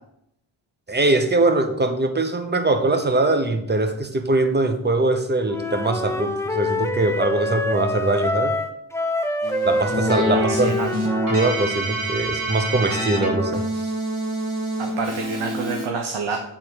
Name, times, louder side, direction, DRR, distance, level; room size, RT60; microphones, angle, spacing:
voice 1, 0.9-8.5 9.6-10.7 11.3-13.9, right 2 dB, 20° right, 7 dB, 0.8 m, -22 dB
Wind instrument woodwind instrument, 5.5-11.7, left 2 dB, 5° left, 0.4 m, -26 dB
Keyboard (musical), 9.4-15.9, right 1 dB, 40° right, 1.9 m, -26 dB
voice 2, 10.3-10.9 14.8-16.4, right 5 dB, 75° right, 4 dB, 0.8 m, -28 dB
8.4 x 3.7 x 4.5 m, 0.79 s
wide cardioid pair, 110°, 48 cm